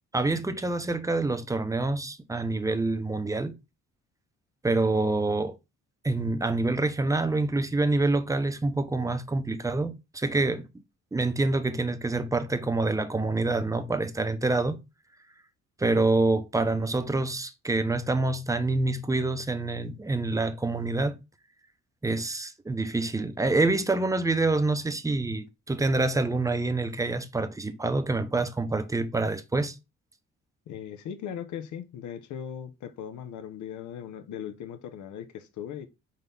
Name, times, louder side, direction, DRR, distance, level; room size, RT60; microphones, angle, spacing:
voice 1, 0.1-3.6 4.6-5.6 6.0-10.7 11.1-14.8 15.8-21.2 22.0-29.8, right 2 dB, 10° right, 0.7 m, -26 dB
voice 2, 30.7-35.9, left 9 dB, 75° left, 0.8 m, -38 dB
4.1 x 3.9 x 3.3 m
cardioid pair, 90°, 30 cm